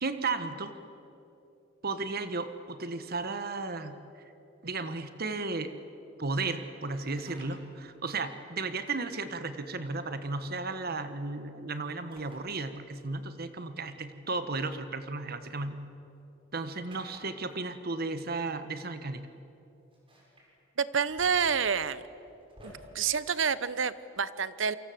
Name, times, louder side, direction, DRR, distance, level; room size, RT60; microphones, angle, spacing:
voice 1, 0.0-0.7 1.8-4.0 4.6-5.7 6.2-15.8 16.5-19.2, right 3 dB, 50° right, 10 dB, 1.3 m, -34 dB
sound 1, 7.1-7.6 8.9-9.0 10.5-10.9 12.1-12.5 12.9-13.0 14.4-15.6 16.9-17.5 18.5-18.6 18.8-18.9 19.9-20.5 20.9-22.7, equal, 30° right, 6.5 m, -55 dB
voice 2, 20.8-22.0 22.6-24.8, right 6 dB, 75° right, 16 dB, 0.9 m, -28 dB
28.5 x 24.0 x 7.8 m, 2.8 s
head